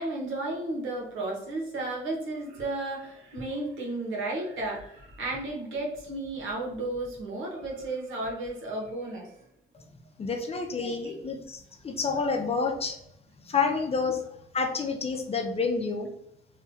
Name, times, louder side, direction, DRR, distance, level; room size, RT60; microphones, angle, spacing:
voice 1, 0.0-9.4 10.8-11.1, right 2 dB, 80° right, -1 dB, 0.9 m, -33 dB
voice 2, 10.2-13.0 13.4-14.3 14.5-16.1, left 4 dB, 30° left, 4 dB, 0.5 m, -29 dB
2.8 x 2.2 x 2.7 m, 0.71 s
cardioid pair, 90°, 20 cm